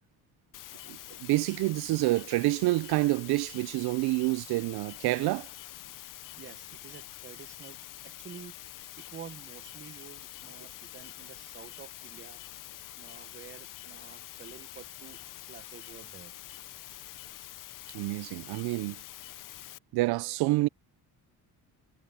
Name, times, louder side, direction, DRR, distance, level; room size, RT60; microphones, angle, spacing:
sound 1, 0.5-19.8, left 14 dB, 55° left, 0.7 m, -46 dB
voice 1, 0.9-5.5 17.9-19.0 19.9-20.7, right 20 dB, 75° right, 0.5 m, -28 dB
voice 2, 6.4-8.5 9.0-12.4 13.0-16.3, right 7 dB, 30° right, 1.1 m, -49 dB
cardioid pair, 115°, 39 cm